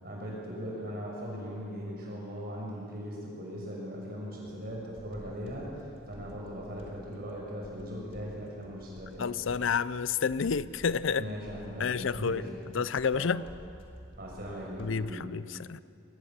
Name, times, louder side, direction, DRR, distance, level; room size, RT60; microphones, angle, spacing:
voice 1, 0.0-9.3 11.1-12.6 13.1-13.4 14.2-15.3, equal, 50° right, 6.4 m, -39 dB
sound 1, 4.5-15.1, equal, 25° left, 2.3 m, -52 dB
voice 2, 9.2-11.3 11.8-12.4 12.7-13.4 14.8-15.8, left 6 dB, 70° left, 0.5 m, -29 dB
22.0 x 18.5 x 7.4 m
head